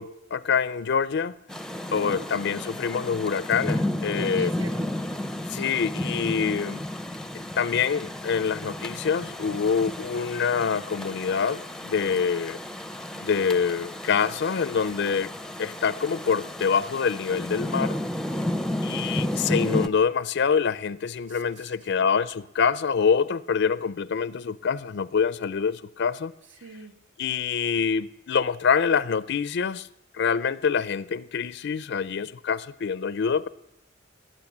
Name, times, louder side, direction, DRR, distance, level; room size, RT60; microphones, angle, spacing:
voice 1, 0.0-1.3 1.9-4.5 5.5-6.8 7.6-12.6 13.2-15.3 15.6-18.0 18.8-26.3 27.2-29.9 30.1-33.5, left 6 dB, 60° left, 0.5 m, -25 dB
Rain, 1.5-19.9, left 1 dB, 5° left, 0.6 m, -32 dB
voice 2, 1.9-2.3 4.3-4.9 18.3-18.6 21.3-21.7 26.6-26.9, right 4 dB, 65° right, 1.6 m, -45 dB
19.5 x 9.2 x 7.2 m
head